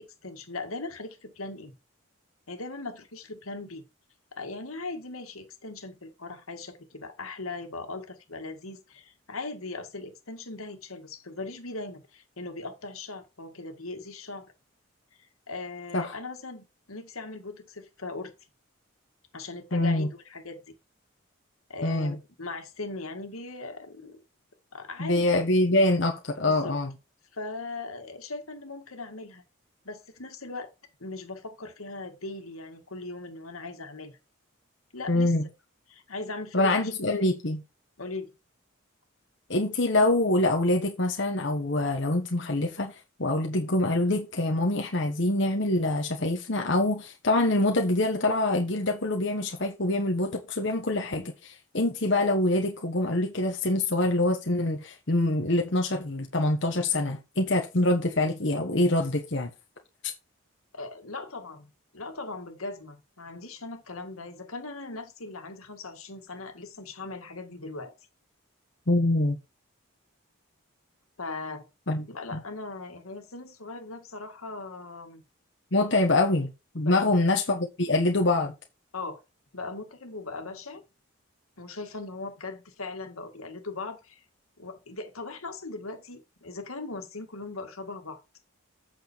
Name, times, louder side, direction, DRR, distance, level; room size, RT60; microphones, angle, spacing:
voice 1, 0.0-1.7 2.5-3.9 4.4-14.5 15.5-18.3 19.3-20.6 21.7-24.2 24.7-25.4 26.5-26.7 27.3-29.4 29.8-30.7 31.0-34.1 34.9-35.3 35.9-36.9 38.0-38.3 60.7-67.9 71.2-71.7 72.1-75.2 76.9-77.1 78.9-79.2 79.5-80.8 81.6-84.2 84.6-88.2, left 3 dB, 85° left, 2.0 m, -39 dB
voice 2, 19.7-20.1 21.8-22.1 25.0-26.9 35.1-35.5 36.5-37.6 39.5-59.5 68.9-69.4 71.9-72.1 72.3-72.4 75.7-78.5, left 2 dB, 55° left, 1.2 m, -25 dB
8.4 x 6.2 x 4.5 m
head